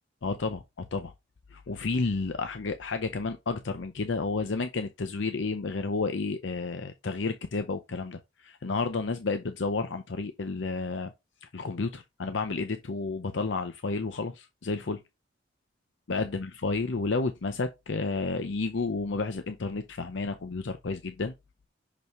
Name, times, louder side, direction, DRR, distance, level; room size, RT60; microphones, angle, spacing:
voice 1, 0.2-1.1 1.5-11.1 11.4-15.0 16.1-21.3, left 3 dB, 75° left, 0.7 m, -31 dB
6.1 x 5.5 x 3.1 m
head